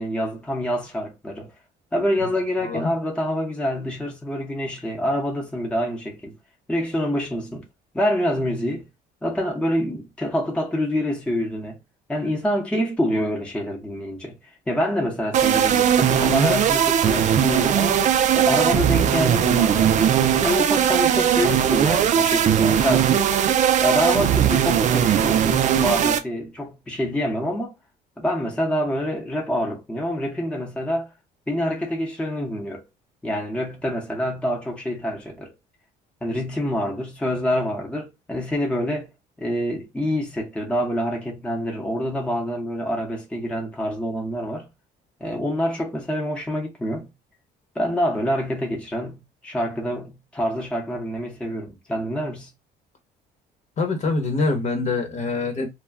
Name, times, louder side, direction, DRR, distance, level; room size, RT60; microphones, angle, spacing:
voice 1, 0.0-1.5 1.9-6.3 6.7-7.7 7.9-8.9 9.2-11.8 12.1-14.4 14.7-18.0 18.3-23.2 23.5-27.7 28.2-31.1 31.5-32.8 33.2-35.5 36.2-39.1 39.4-44.7 45.2-47.1 47.7-52.5, equal, 5° left, 0.8 m, -26 dB
sound 1, 15.3-26.2, right 9 dB, 45° right, 0.4 m, -19 dB
voice 2, 53.8-55.7, left 3 dB, 45° left, 1.0 m, -24 dB
2.2 x 2.1 x 3.4 m
cardioid pair, 110°, 17 cm